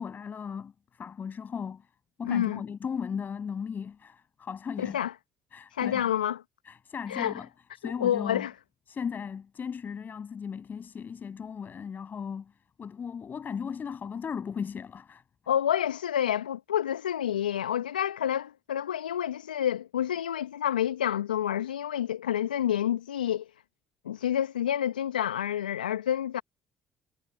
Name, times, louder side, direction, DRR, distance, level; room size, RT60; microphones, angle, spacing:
voice 1, 0.0-1.9 2.2-5.0 5.5-6.1 6.7-7.5 7.8-8.5 8.9-12.5 12.8-15.2, left 6 dB, 40° left, 7.4 m, -36 dB
voice 2, 2.2-2.6 4.8-5.1 5.7-6.4 7.1-7.3 8.0-8.5 15.5-23.5 24.0-26.4, left 10 dB, 85° left, 1.5 m, -28 dB
figure-of-eight pair, 50°, 5 cm